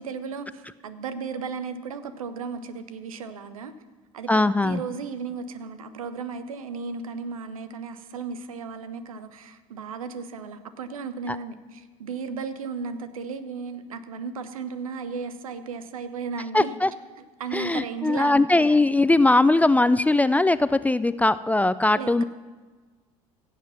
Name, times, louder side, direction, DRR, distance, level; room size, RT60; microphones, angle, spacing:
voice 1, 0.0-3.7 4.1-16.8 17.4-18.8 22.0-22.2, right 5 dB, 80° right, 11 dB, 0.8 m, -35 dB
voice 2, 4.3-4.8 11.3-11.4 16.5-16.9 17.5-22.2, left 2 dB, 10° left, 15 dB, 0.3 m, -20 dB
16.5 x 7.5 x 5.8 m, 1.3 s
figure-of-eight pair, 65°, 18 cm